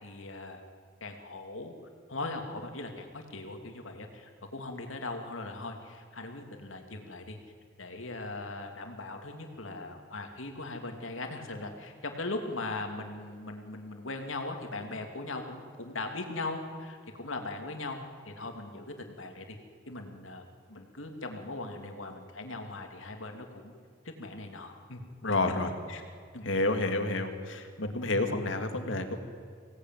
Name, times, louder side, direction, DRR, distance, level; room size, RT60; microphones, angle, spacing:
voice 1, 0.0-0.6 1.0-1.7 2.1-7.4 7.8-18.0 18.2-19.6 19.9-23.7 24.2-25.5 25.9-26.0 26.3-26.6, left 2 dB, 90° left, 4 dB, 2.8 m, -39 dB
voice 2, 25.2-25.7 26.4-29.2, left 2 dB, 75° left, 6 dB, 2.4 m, -29 dB
25.0 x 18.0 x 9.3 m, 2.2 s
head